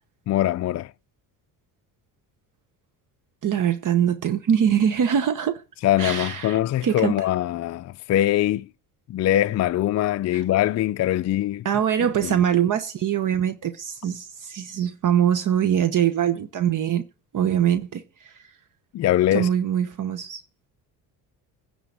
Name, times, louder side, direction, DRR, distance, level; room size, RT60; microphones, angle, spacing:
voice 1, 0.3-0.9 5.8-8.7 9.1-11.7 12.2-12.3 18.9-19.5, left 13 dB, 45° left, 0.4 m, -22 dB
voice 2, 3.4-5.6 6.0-7.1 10.3-10.4 11.6-17.1 17.3-18.4 19.3-20.4, right 9 dB, 50° right, 1.0 m, -23 dB
9.9 x 4.0 x 7.3 m
supercardioid pair, 80°, 39 cm